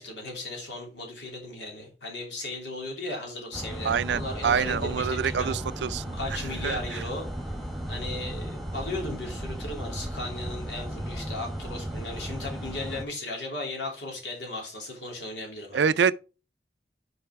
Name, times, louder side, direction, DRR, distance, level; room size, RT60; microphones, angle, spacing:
voice 1, 0.0-5.6 6.1-7.5 7.9-15.9, left 2 dB, 85° left, 3.0 m, -36 dB
sound 1, 3.5-13.0, equal, ahead, 1.2 m, -35 dB
voice 2, 3.8-6.4 6.6-7.0 15.7-16.1, right 7 dB, 75° right, 0.4 m, -26 dB
6.7 x 4.8 x 4.6 m
head